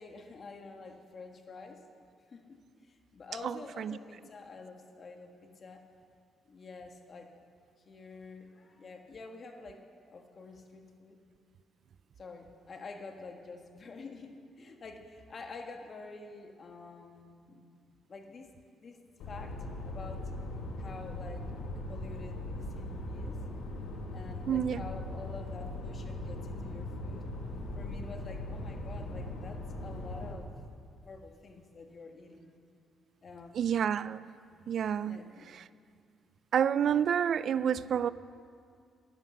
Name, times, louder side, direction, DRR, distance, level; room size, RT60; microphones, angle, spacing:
voice 1, 0.0-1.8 2.3-5.8 6.4-7.3 7.8-9.8 10.1-11.2 12.2-17.6 18.1-18.5 18.8-20.2 20.8-21.5 21.9-23.4 24.1-27.2 27.7-30.5 31.0-32.5 33.2-33.7 35.0-35.5, left 3 dB, 45° left, 4 dB, 1.5 m, -48 dB
voice 2, 3.4-4.0 24.5-24.8 33.6-34.2 34.7-35.2 36.5-38.1, right 8 dB, 60° right, 17 dB, 0.3 m, -29 dB
sound 1, 19.2-30.3, left 1 dB, 85° left, 1.7 m, -39 dB
11.0 x 11.0 x 7.0 m, 2.3 s
cardioid pair, 90°, 0 cm